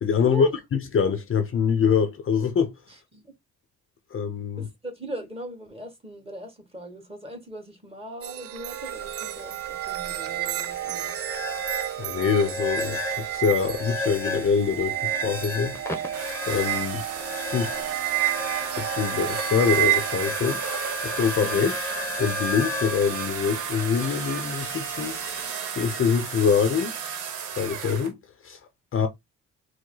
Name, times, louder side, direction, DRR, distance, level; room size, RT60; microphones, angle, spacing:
voice 1, 0.0-2.7 4.1-4.7 12.0-15.7 16.5-17.0 17.5-17.8 18.8-20.6 21.0-21.7 22.2-25.2 25.7-26.9 27.6-28.2 28.4-28.6 28.9-29.1, left 6 dB, 45° left, 0.7 m, -24 dB
voice 2, 2.9-3.3 4.6-11.1 21.4-21.8, right 1 dB, 20° right, 1.6 m, -39 dB
sound 1, 8.2-20.3, right 14 dB, 50° right, 0.4 m, -30 dB
sound 2, 8.7-25.5, left 3 dB, 10° left, 0.9 m, -36 dB
sound 3, 16.1-28.1, right 7 dB, 85° right, 0.9 m, -33 dB
4.7 x 2.1 x 3.8 m
cardioid pair, 90°, 30 cm